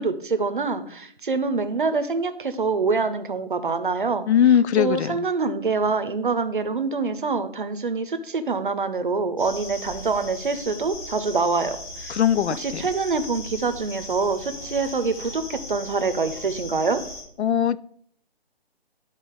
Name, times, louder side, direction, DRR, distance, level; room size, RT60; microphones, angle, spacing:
voice 1, 0.0-4.3 4.8-12.1 12.5-17.0, right 4 dB, 50° right, 11 dB, 0.7 m, -25 dB
voice 2, 4.3-5.1 12.1-12.8 17.4-17.8, left 9 dB, 85° left, 17 dB, 0.5 m, -20 dB
sound 1, 9.4-17.2, left 1 dB, 45° left, 2.6 m, -38 dB
11.5 x 3.9 x 3.6 m, 0.64 s
hypercardioid pair, 180°, 32 cm